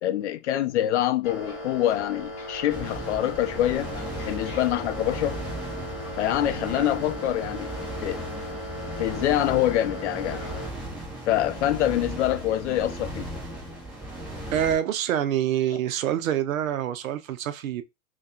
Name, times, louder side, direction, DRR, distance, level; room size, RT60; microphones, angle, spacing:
voice 1, 0.0-3.9 4.2-5.4 6.2-7.7 8.0-8.2 9.0-10.4 11.3-13.3, left 13 dB, 55° left, 0.5 m, -25 dB
sound 1, 1.2-10.7, equal, 30° left, 1.1 m, -37 dB
sound 2, 2.7-14.7, right 1 dB, ahead, 0.5 m, -36 dB
voice 2, 14.5-17.8, right 10 dB, 70° right, 0.5 m, -26 dB
3.4 x 2.2 x 2.7 m
hypercardioid pair, 120°, 43 cm